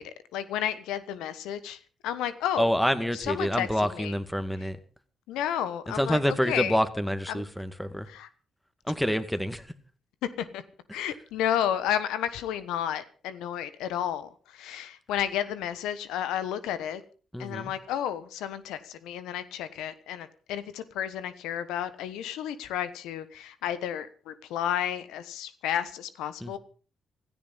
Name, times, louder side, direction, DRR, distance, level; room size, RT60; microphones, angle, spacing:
voice 1, 0.0-2.7 3.1-3.7 3.9-4.1 5.3-6.8 7.3-7.4 8.1-8.3 10.4-10.6 10.9-17.0 17.4-26.6, left 10 dB, 85° left, 14 dB, 1.1 m, -32 dB
voice 2, 2.6-4.8 6.0-8.1 8.9-9.6 10.9-11.0 17.3-17.7 26.4-26.6, equal, 5° left, 11 dB, 2.1 m, -27 dB
16.0 x 14.0 x 5.5 m, 0.40 s
supercardioid pair, 50°, 0 cm